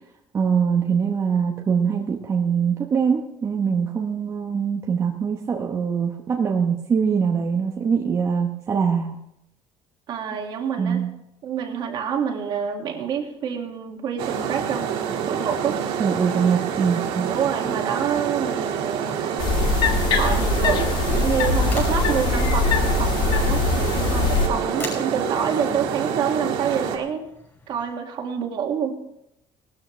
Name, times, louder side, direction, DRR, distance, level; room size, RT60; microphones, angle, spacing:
voice 1, 0.3-9.2 10.8-11.1 16.0-17.3, right 6 dB, 30° right, 0 dB, 1.0 m, -23 dB
voice 2, 10.1-11.1 11.4-14.9 15.3-15.8 17.3-19.4 20.1-27.3 27.7-29.0, right 7 dB, 55° right, 2 dB, 2.2 m, -27 dB
sound 1, 14.2-27.0, right 8 dB, 85° right, 2.0 m, -27 dB
sound 2, 19.4-24.5, left 4 dB, 55° left, 1.4 m, -22 dB
sound 3, 21.4-27.8, left 3 dB, 25° left, 5.9 m, -41 dB
19.0 x 13.0 x 3.3 m, 0.81 s
cardioid pair, 155°, 10 cm